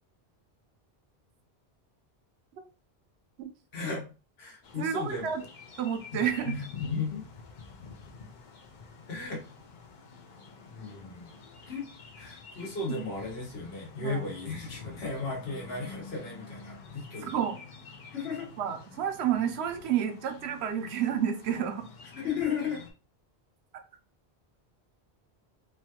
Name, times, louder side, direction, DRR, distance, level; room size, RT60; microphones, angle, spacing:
voice 1, 3.7-4.0 4.4-5.3 6.1-7.2 9.1-9.4 10.7-11.3 11.7-11.9 12.2-17.4 18.1-18.5 22.2-22.8, left 4 dB, 75° left, -1 dB, 1.3 m, -35 dB
sound 1, 4.6-22.9, left 4 dB, 55° left, 0.6 m, -49 dB
voice 2, 4.8-5.4 5.8-6.6 12.9-13.0 14.0-14.3 17.2-17.6 18.6-21.9, right 9 dB, 80° right, 7 dB, 0.9 m, -30 dB
3.1 x 2.3 x 2.8 m, 0.33 s
omnidirectional pair, 1.1 m